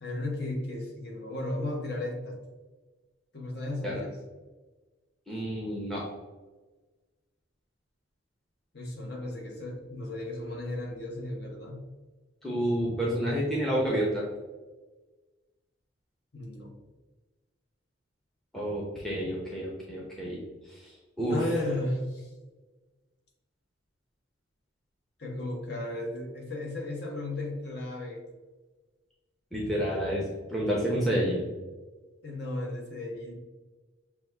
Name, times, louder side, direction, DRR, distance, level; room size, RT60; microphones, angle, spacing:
voice 1, 0.0-2.4 3.3-4.2 8.7-11.8 16.3-16.7 21.3-22.3 25.2-28.2 32.2-33.3, left 1 dB, 55° left, 0 dB, 0.9 m, -34 dB
voice 2, 5.3-6.0 12.4-14.2 18.5-20.4 21.2-21.4 29.5-31.5, equal, ahead, -4 dB, 0.6 m, -29 dB
5.9 x 2.3 x 3.3 m, 1.3 s
head